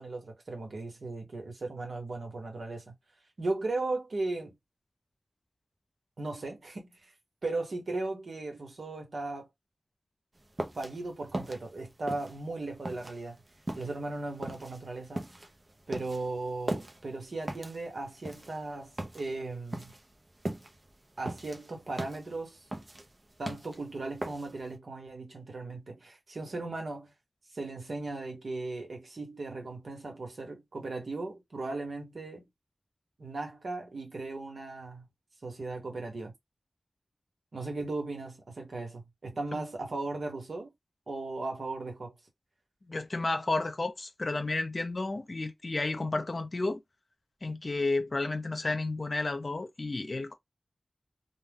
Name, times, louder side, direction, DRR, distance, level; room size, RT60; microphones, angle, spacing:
voice 1, 0.0-2.9 3.4-4.6 6.2-7.0 7.4-9.5 10.8-13.4 13.8-15.2 15.9-19.9 21.2-22.6 23.4-27.1 27.5-32.5 33.2-35.1 35.4-36.3 37.5-40.7 41.1-42.1, right 2 dB, 80° right, 1.2 m, -37 dB
sound 1, 10.4-24.7, right 1 dB, 40° right, 0.7 m, -40 dB
voice 2, 42.9-46.8 47.4-50.3, left 2 dB, 50° left, 0.7 m, -32 dB
2.4 x 2.3 x 3.5 m
wide cardioid pair, 65°, 0 cm